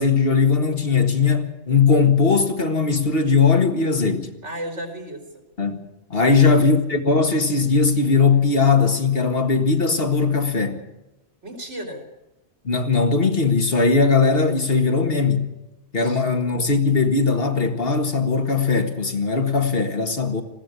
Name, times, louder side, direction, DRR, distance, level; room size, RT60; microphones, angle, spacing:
voice 1, 0.0-4.3 5.6-10.8 12.6-15.5 15.9-20.4, left 4 dB, 55° left, 2.0 m, -19 dB
voice 2, 4.4-5.2 6.1-6.7 11.4-12.0 16.0-16.3, equal, 90° right, 4.0 m, -33 dB
20.5 x 15.5 x 8.3 m
omnidirectional pair, 1.2 m